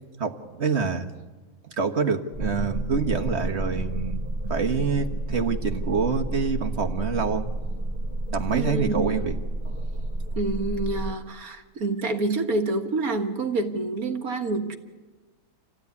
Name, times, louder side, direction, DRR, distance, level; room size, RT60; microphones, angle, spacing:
voice 1, 0.2-1.1 1.8-4.2 4.5-7.5 8.3-9.3, right 5 dB, 45° right, 4 dB, 1.6 m, -26 dB
sound 1, 2.3-11.1, right 1 dB, 30° right, 2.3 m, -30 dB
voice 2, 8.5-9.1 10.4-14.8, right 3 dB, 70° right, 5 dB, 2.0 m, -27 dB
27.5 x 16.0 x 9.6 m, 1.3 s
omnidirectional pair, 1.6 m